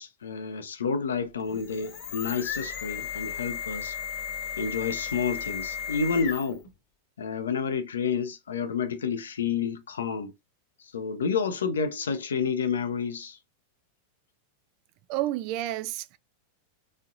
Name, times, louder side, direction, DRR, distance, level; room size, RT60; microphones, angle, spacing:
voice 1, 0.0-4.0 4.6-6.6 7.2-10.3 10.9-13.4, left 6 dB, 65° left, 0.7 m, -29 dB
sound 1, 1.4-6.7, left 8 dB, 40° left, 1.0 m, -35 dB
voice 2, 15.1-16.2, right 15 dB, 45° right, 0.3 m, -30 dB
4.2 x 3.5 x 2.6 m
figure-of-eight pair, 90°, 0 cm